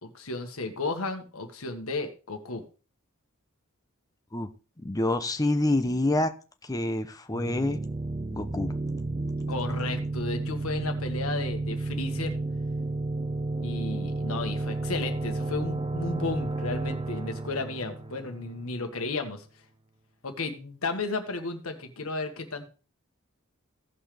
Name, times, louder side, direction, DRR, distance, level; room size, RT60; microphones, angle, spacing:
voice 1, 0.0-2.6 9.5-12.3 13.6-19.4 20.2-22.7, left 3 dB, 70° left, 6 dB, 1.6 m, -33 dB
voice 2, 4.8-6.3 6.6-7.8 8.3-8.7, left 1 dB, 15° left, 8 dB, 0.8 m, -27 dB
sound 1, 7.3-18.9, right 2 dB, 25° right, 0.8 m, -32 dB
16.5 x 5.7 x 3.4 m, 0.34 s
head